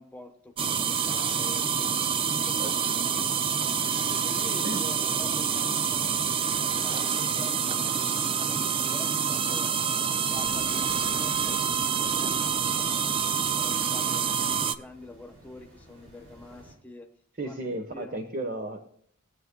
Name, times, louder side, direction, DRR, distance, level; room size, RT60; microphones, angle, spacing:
voice 1, 0.0-2.8 4.1-9.7 10.1-17.1 17.4-18.1, left 1 dB, 5° left, 3 dB, 1.1 m, -46 dB
sound 1, 0.6-14.7, right 7 dB, 25° right, 0.4 m, -27 dB
sound 2, 10.3-16.7, equal, 85° right, 5.1 m, -52 dB
voice 2, 17.4-19.0, right 1 dB, 40° right, 5 dB, 1.0 m, -34 dB
20.5 x 8.1 x 2.2 m, 0.64 s
head